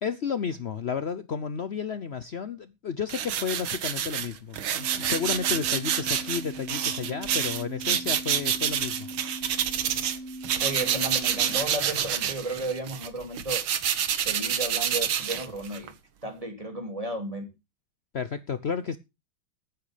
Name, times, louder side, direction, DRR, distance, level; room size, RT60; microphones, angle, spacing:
voice 1, 0.0-9.1 18.1-19.0, left 6 dB, 70° left, 0.6 m, -32 dB
sound 1, 3.1-10.2 10.4-15.9, right 9 dB, 75° right, 2.0 m, -28 dB
sound 2, 4.8-11.7, right 1 dB, 5° left, 2.5 m, -40 dB
voice 2, 10.6-13.6 14.2-15.9 16.2-17.5, right 1 dB, 15° right, 2.7 m, -33 dB
14.5 x 9.6 x 5.0 m
omnidirectional pair, 2.3 m